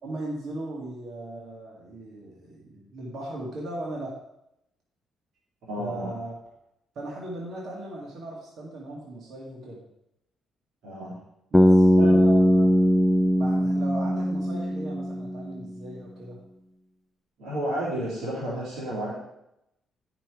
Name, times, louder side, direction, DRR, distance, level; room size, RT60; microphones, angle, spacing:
voice 1, 0.0-4.1 5.8-6.4 7.0-9.8 11.5-12.7 13.4-16.4, right 1 dB, 65° right, -3 dB, 2.0 m, -37 dB
voice 2, 5.6-6.1 10.8-11.1 12.0-12.2 17.4-19.1, right 1 dB, 80° right, -8 dB, 3.3 m, -31 dB
Bass guitar, 11.5-15.6, equal, 5° left, 0.4 m, -20 dB
9.9 x 6.0 x 4.8 m, 0.82 s
cardioid pair, 90°, 0 cm